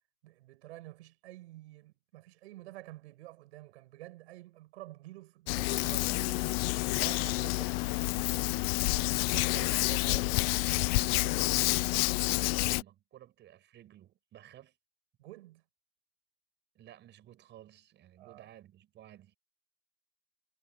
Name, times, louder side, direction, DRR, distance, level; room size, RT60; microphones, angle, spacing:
voice 1, 0.2-8.0 9.4-9.7 15.2-15.6 18.2-18.5, right 17 dB, 90° right, 6.1 m, -50 dB
Hands, 5.5-12.8, left 23 dB, 65° left, 0.6 m, -29 dB
voice 2, 9.3-12.1 12.5-14.7 16.7-19.4, right 12 dB, 35° right, 6.8 m, -52 dB
supercardioid pair, 150°, 32 cm